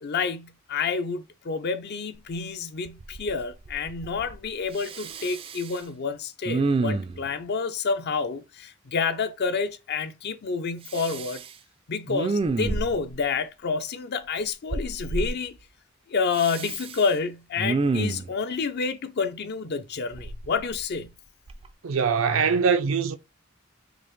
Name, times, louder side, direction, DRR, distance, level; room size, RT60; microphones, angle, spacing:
voice 1, 0.0-11.4 11.9-15.6 16.1-21.1, left 5 dB, 55° left, 0.5 m, -29 dB
Respiratory sounds, 2.3-2.4 2.8-3.4 3.6-4.4 4.8-5.8 6.4-7.3 10.9-11.5 12.1-13.1 14.7-15.3 16.3-17.0 17.6-18.3 20.1-21.1 21.5-21.7, right 3 dB, 30° right, 0.3 m, -29 dB
voice 2, 21.8-23.1, right 6 dB, 90° right, 0.5 m, -22 dB
4.9 x 2.1 x 3.1 m
head